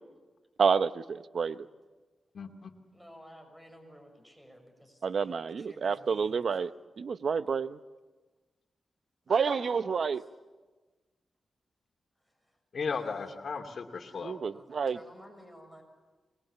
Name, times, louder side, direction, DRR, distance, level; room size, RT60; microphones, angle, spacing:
voice 1, 0.6-1.6 5.0-6.7 7.0-7.8 9.3-10.2 14.2-15.0, right 6 dB, 70° right, 13 dB, 0.8 m, -29 dB
voice 2, 2.3-2.7 12.7-14.4, left 5 dB, 65° left, 4 dB, 2.4 m, -36 dB
voice 3, 2.9-6.5 9.3-10.1 12.5-12.6 12.9-13.0 14.1-14.2 14.5-15.8, equal, 5° right, 4 dB, 6.2 m, -50 dB
24.5 x 21.5 x 8.4 m, 1.3 s
cardioid pair, 80°, 0 cm